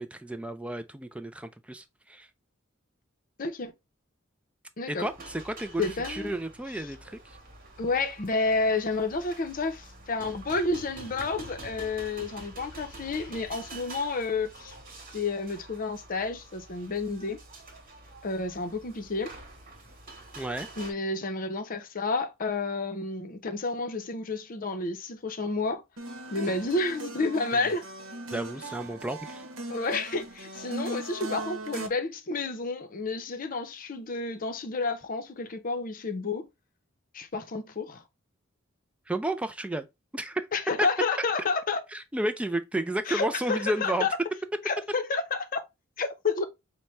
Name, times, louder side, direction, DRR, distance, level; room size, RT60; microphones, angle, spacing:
voice 1, 0.0-2.3 4.9-7.4 20.4-20.7 28.3-29.4 39.1-39.9 40.1-40.4 40.8-40.9 41.2-41.3 41.9-44.1, right 1 dB, 5° right, 0.3 m, -32 dB
voice 2, 3.4-3.7 4.8-5.1 5.8-6.3 7.8-14.8 15.1-17.4 18.2-19.3 20.8-25.8 26.3-27.8 29.7-36.5 37.1-38.0 40.5-41.8 43.1-44.1 44.7-45.6 46.0-46.4, left 3 dB, 45° left, 0.6 m, -30 dB
sound 1, 5.0-20.9, right 2 dB, 45° right, 1.3 m, -46 dB
sound 2, 26.0-31.9, right 2 dB, 75° right, 0.9 m, -39 dB
5.6 x 2.2 x 3.1 m
head